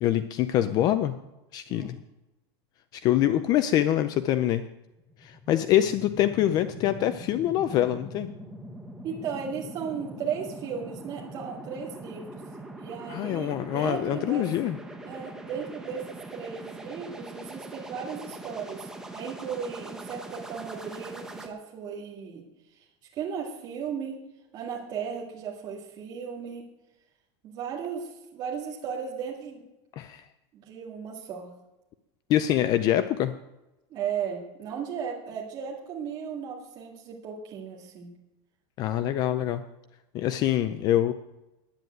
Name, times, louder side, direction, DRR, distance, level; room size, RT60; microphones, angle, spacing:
voice 1, 0.0-1.1 1.5-2.0 2.9-4.6 5.2-8.3 13.1-14.8 30.0-30.2 32.3-33.3 38.8-39.6 40.1-41.1, left 12 dB, 25° left, 11 dB, 0.4 m, -25 dB
sound 1, 5.0-21.5, right 1 dB, 5° right, 0.9 m, -42 dB
voice 2, 9.0-12.4 12.8-14.5 15.0-22.4 22.8-22.9 23.1-24.2 24.5-26.7 27.4-29.6 30.5-31.5 33.9-38.1, right 7 dB, 30° right, -3 dB, 1.9 m, -36 dB
10.0 x 9.4 x 9.2 m, 0.98 s
supercardioid pair, 180°, 15 cm